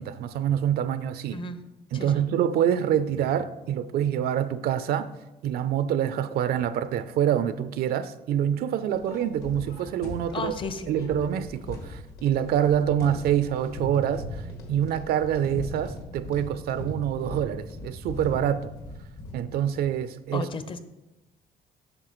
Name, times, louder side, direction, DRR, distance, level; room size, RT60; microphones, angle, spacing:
voice 1, 0.0-1.4 1.9-5.1 5.4-10.6 10.9-18.7 19.3-20.5, right 9 dB, 65° right, 0.4 m, -26 dB
voice 2, 1.3-1.6 1.9-2.2 10.3-11.1 20.3-20.8, left 4 dB, 30° left, 0.6 m, -34 dB
sound 1, 8.9-19.9, left 1 dB, 70° left, 1.7 m, -39 dB
8.8 x 6.4 x 3.0 m
cardioid pair, 110°, 17 cm